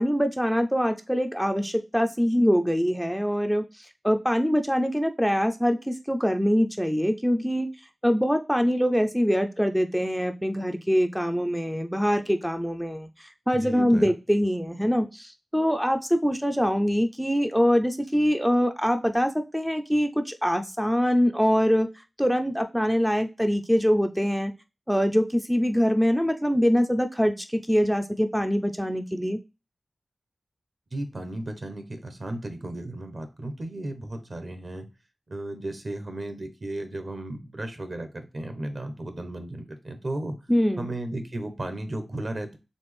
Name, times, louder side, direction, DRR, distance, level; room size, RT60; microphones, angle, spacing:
voice 1, 0.0-7.7 8.0-21.9 22.2-24.5 24.9-29.4 40.5-40.9, equal, ahead, 6 dB, 0.4 m, -24 dB
voice 2, 13.5-14.1 30.9-34.9 35.3-40.4 40.8-42.6, right 1 dB, 50° right, 7 dB, 1.0 m, -34 dB
4.2 x 3.3 x 3.3 m, 0.29 s
wide cardioid pair, 60°, 0 cm